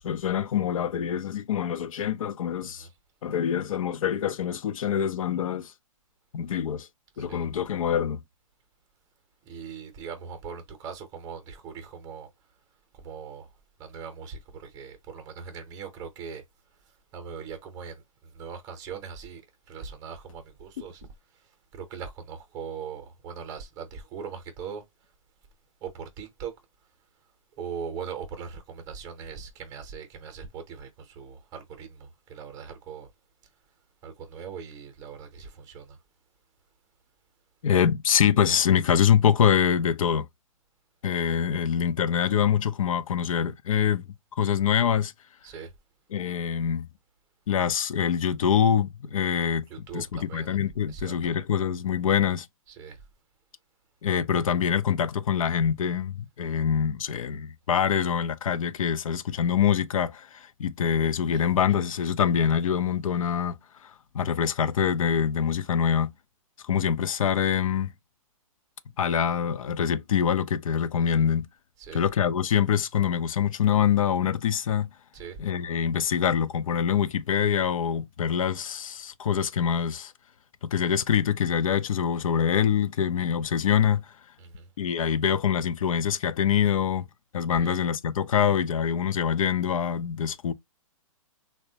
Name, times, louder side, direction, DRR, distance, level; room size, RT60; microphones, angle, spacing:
voice 1, 0.0-2.9 3.2-5.7 6.3-6.9 7.2-8.2 37.6-40.3 41.0-44.0 44.4-45.1 46.1-46.9 47.5-49.6 49.9-52.5 54.0-63.6 63.8-66.1 66.7-67.9 69.0-71.5 71.9-74.9 75.4-80.1 80.6-84.1 84.8-87.1 87.3-90.5, left 8 dB, 70° left, 0.4 m, -25 dB
voice 2, 7.1-7.5 9.4-12.3 12.9-13.5 13.8-16.4 16.8-21.0 21.3-24.8 25.8-26.5 27.6-33.1 34.0-36.0 45.4-45.7 49.7-50.6 50.9-51.3 52.7-53.0 61.3-61.4 71.8-72.0 75.1-75.4 84.4-84.7 87.5-87.8, right 6 dB, 20° right, 0.6 m, -40 dB
3.2 x 2.1 x 2.7 m
hypercardioid pair, 135°, 18 cm